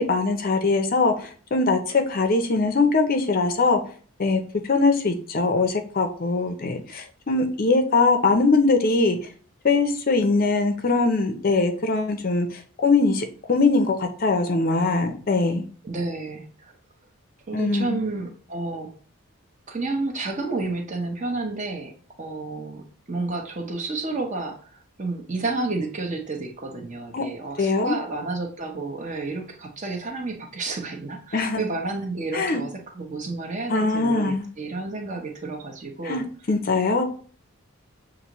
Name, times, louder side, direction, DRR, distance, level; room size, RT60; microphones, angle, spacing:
voice 1, 0.0-3.8 4.2-4.4 4.7-9.2 9.6-15.6 17.5-18.0 27.1-27.2 27.6-27.9 31.3-31.6 32.3-32.6 33.7-34.5 36.0-37.0, left 3 dB, 40° left, 6 dB, 0.5 m, -22 dB
voice 2, 15.8-16.7 17.5-18.9 19.7-21.9 22.2-36.3, right 3 dB, 35° right, 3 dB, 0.8 m, -31 dB
6.8 x 2.6 x 3.0 m, 0.43 s
head